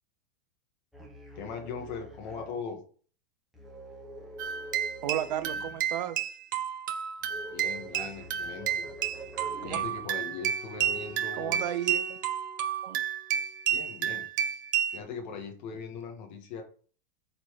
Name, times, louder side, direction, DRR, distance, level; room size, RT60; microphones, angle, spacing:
sound 1, 0.9-2.6 3.5-5.9 7.2-10.0 10.6-11.1, right 1 dB, ahead, 1.0 m, -45 dB
voice 1, 1.4-2.8 7.5-8.9 9.2-9.3 9.6-11.7 13.7-14.3 14.9-16.6, left 5 dB, 50° left, 3 dB, 1.9 m, -40 dB
sound 2, 4.4-15.0, right 9 dB, 20° right, 0.3 m, -31 dB
voice 2, 5.0-6.2 9.6-9.8 11.4-12.2 12.8-13.0, right 12 dB, 45° right, 12 dB, 0.8 m, -33 dB
Wind instrument woodwind instrument, 8.9-13.9, left 1 dB, 85° left, 2.3 m, -51 dB
8.3 x 4.6 x 4.8 m, 0.44 s
supercardioid pair, 180°, 30 cm